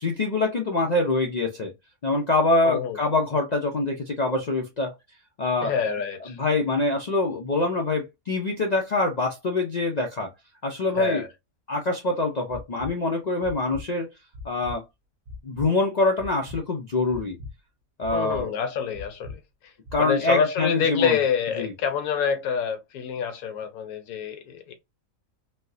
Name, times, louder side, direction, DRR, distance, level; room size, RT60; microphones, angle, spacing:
voice 1, 0.0-1.7 2.0-4.9 5.4-5.7 6.3-10.3 10.6-11.2 11.7-14.1 14.4-14.8 15.4-17.4 18.0-18.5 19.9-21.2 21.6-21.7, left 2 dB, 65° left, 0.4 m, -25 dB
voice 2, 2.6-3.0 5.6-6.4 11.0-11.3 18.1-19.4 20.0-24.7, left 7 dB, 80° left, 1.2 m, -26 dB
sound 1, 12.5-12.9 13.4-13.8 14.3-14.8 15.3-15.7 16.2-16.6 17.1-17.5 18.0-18.4 18.9-19.4 19.9-20.0, left 3 dB, 70° right, 1.1 m, -38 dB
4.2 x 2.1 x 2.5 m
omnidirectional pair, 1.5 m